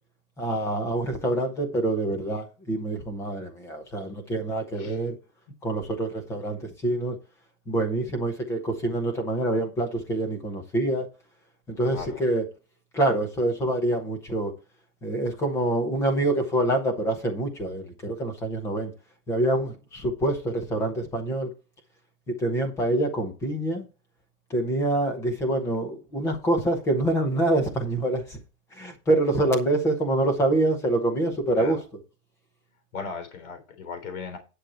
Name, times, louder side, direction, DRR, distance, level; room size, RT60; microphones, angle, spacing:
voice 1, 0.4-5.1 5.6-7.2 7.7-11.1 11.7-12.4 12.9-14.5 15.0-18.9 19.3-21.5 22.4-23.9 24.5-28.4 28.7-31.8, right 1 dB, 5° left, 0.7 m, -26 dB
voice 2, 4.8-5.1 11.8-12.3 31.6-31.8 32.9-34.4, left 5 dB, 60° left, 3.7 m, -37 dB
10.5 x 6.4 x 4.3 m
supercardioid pair, 175°, 47 cm